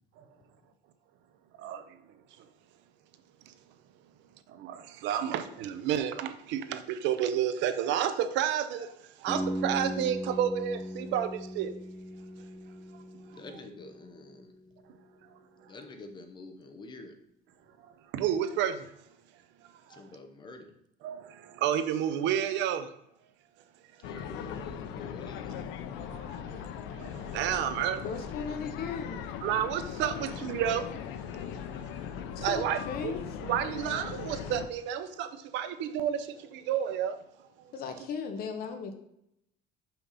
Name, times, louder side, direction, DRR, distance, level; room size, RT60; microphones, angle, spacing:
voice 1, 5.0-6.8 7.0-8.9 9.2-11.7 18.1-18.7 21.0-21.2 21.6-22.8 27.3-28.0 29.4-30.8 32.4-33.1 33.5-35.3 35.5-36.2 36.7-37.1, right 9 dB, 70° right, 11 dB, 0.6 m, -30 dB
sound 1, 9.3-15.0, equal, 15° right, 0.9 m, -38 dB
voice 2, 13.3-14.5 15.6-17.1 19.9-20.7 24.0-25.7, left 2 dB, 25° left, 5 dB, 0.8 m, -48 dB
sound 2, 24.0-34.7, left 8 dB, 80° left, 0.6 m, -39 dB
voice 3, 28.0-29.2 32.4-33.2 37.7-38.9, left 6 dB, 50° left, 6 dB, 0.9 m, -36 dB
5.7 x 5.3 x 4.1 m, 0.78 s
cardioid pair, 165°, 20 cm